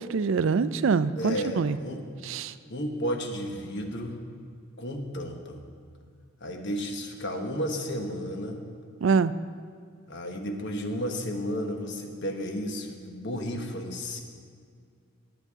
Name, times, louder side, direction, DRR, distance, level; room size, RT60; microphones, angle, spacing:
voice 1, 0.0-1.8 2.2-2.5 9.0-9.3, right 5 dB, 60° right, 14 dB, 0.4 m, -24 dB
voice 2, 1.2-2.0 2.7-4.2 4.8-5.6 6.4-8.6 10.1-14.2, equal, 55° left, 3 dB, 1.2 m, -33 dB
19.5 x 8.0 x 3.7 m, 2.2 s
head